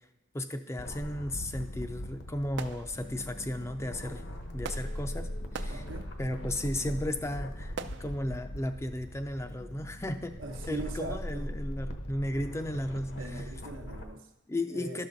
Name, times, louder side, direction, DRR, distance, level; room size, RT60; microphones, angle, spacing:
voice 1, 0.3-4.2 4.5-5.3 5.5-5.8 6.2-7.7 8.0-10.4 10.7-13.1 14.5-15.1, left 1 dB, 15° left, 8 dB, 0.5 m, -34 dB
sound 1, 0.8-14.0, equal, 65° left, 1.0 m, -40 dB
sound 2, 1.8-8.2, right 5 dB, 60° right, 0.4 m, -46 dB
voice 2, 5.7-6.1 10.4-11.5 13.2-14.3 14.7-15.1, right 2 dB, 85° right, 5 dB, 0.9 m, -41 dB
12.0 x 5.8 x 4.0 m, 0.97 s
head